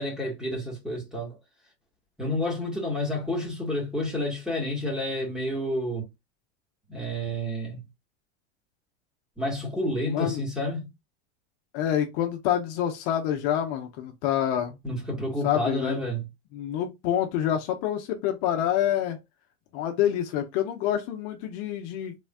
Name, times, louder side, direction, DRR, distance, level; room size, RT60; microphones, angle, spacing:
voice 1, 0.0-1.4 2.2-6.1 6.9-7.8 9.4-10.9 14.8-16.2, left 1 dB, ahead, 1.5 m, -30 dB
voice 2, 10.1-10.4 11.7-14.8 15.4-16.0 16.5-19.2 19.7-22.1, left 10 dB, 50° left, 0.8 m, -27 dB
3.4 x 3.1 x 2.3 m
supercardioid pair, 120°, 34 cm